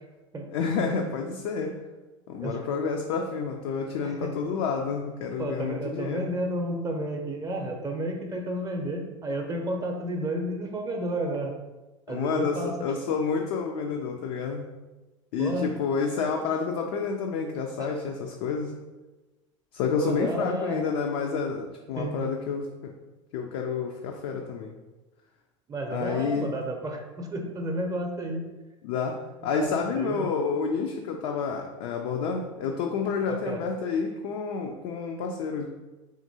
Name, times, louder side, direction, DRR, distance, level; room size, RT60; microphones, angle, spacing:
voice 1, 0.5-1.8 2.3-6.4 12.1-14.7 15.3-18.7 19.7-22.9 23.3-24.7 25.9-26.5 28.8-35.7, left 5 dB, 65° left, 1 dB, 0.4 m, -29 dB
voice 2, 4.0-4.3 5.4-11.5 12.1-12.8 15.4-15.7 17.8-17.9 20.0-20.8 22.0-22.2 25.7-28.5 29.5-30.3 33.3-33.6, right 1 dB, 20° right, 3 dB, 0.6 m, -31 dB
3.7 x 2.9 x 2.7 m, 1.1 s
hypercardioid pair, 85°, 17 cm